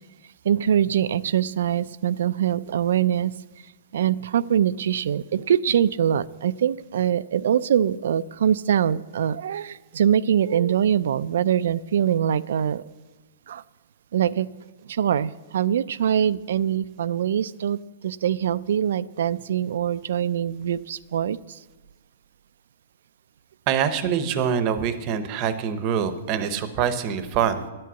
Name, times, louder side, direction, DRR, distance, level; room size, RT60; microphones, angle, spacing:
voice 1, 0.5-3.3 3.9-12.8 13.5-13.6 14.1-14.5 14.9-17.8 18.0-21.4, right 9 dB, 65° right, 16 dB, 0.3 m, -23 dB
voice 2, 23.7-27.7, right 8 dB, 25° right, 11 dB, 0.7 m, -24 dB
10.5 x 7.6 x 8.1 m, 1.2 s
hypercardioid pair, 170°, 0 cm